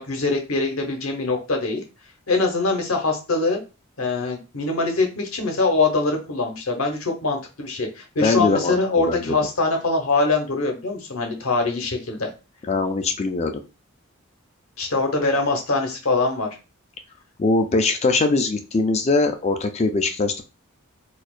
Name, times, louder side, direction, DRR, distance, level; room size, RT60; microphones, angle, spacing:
voice 1, 0.0-1.8 2.3-3.6 4.0-12.3 14.8-16.5, left 3 dB, 80° left, 3 dB, 1.0 m, -23 dB
voice 2, 8.2-8.8 9.1-9.4 12.7-13.6 17.4-20.4, left 3 dB, 30° left, 7 dB, 0.4 m, -21 dB
4.3 x 2.4 x 2.4 m, 0.30 s
head